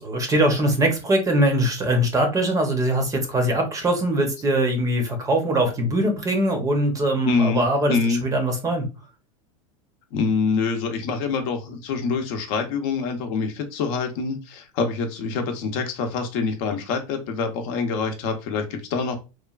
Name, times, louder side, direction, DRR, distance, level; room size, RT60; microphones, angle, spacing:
voice 1, 0.0-8.9, right 1 dB, 20° right, 4 dB, 0.7 m, -22 dB
voice 2, 7.2-8.2 10.1-19.2, left 4 dB, 60° left, 5 dB, 0.7 m, -25 dB
3.1 x 2.2 x 2.3 m, 0.29 s
supercardioid pair, 120°, 19 cm